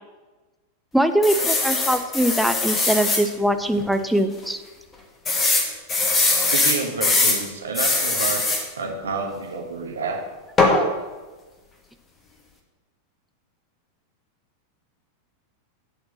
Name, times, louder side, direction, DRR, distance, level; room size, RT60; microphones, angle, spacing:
voice 1, 0.9-4.6 10.6-10.9, right 1 dB, ahead, 8 dB, 0.5 m, -22 dB
sound 1, 1.2-3.2 3.8-3.9 4.2-4.3 5.3-7.4 7.7-8.6 10.6-10.8, left 3 dB, 20° left, 1.4 m, -21 dB
voice 2, 6.3-8.5 8.8-10.2, right 4 dB, 70° right, 2 dB, 1.4 m, -29 dB
8.4 x 4.4 x 7.3 m, 1.2 s
figure-of-eight pair, 90°, 0 cm